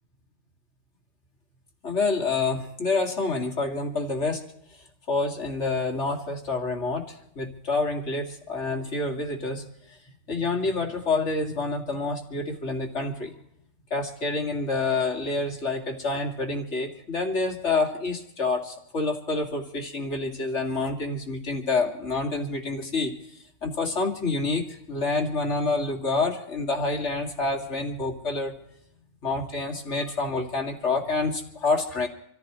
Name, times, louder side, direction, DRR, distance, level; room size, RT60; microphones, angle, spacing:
voice 1, 1.8-4.4 5.1-10.0 10.3-13.3 13.9-23.1 23.6-28.5 29.2-32.1, left 3 dB, 45° left, 2 dB, 2.5 m, -28 dB
27.5 x 15.0 x 3.1 m, 0.75 s
omnidirectional pair, 1.6 m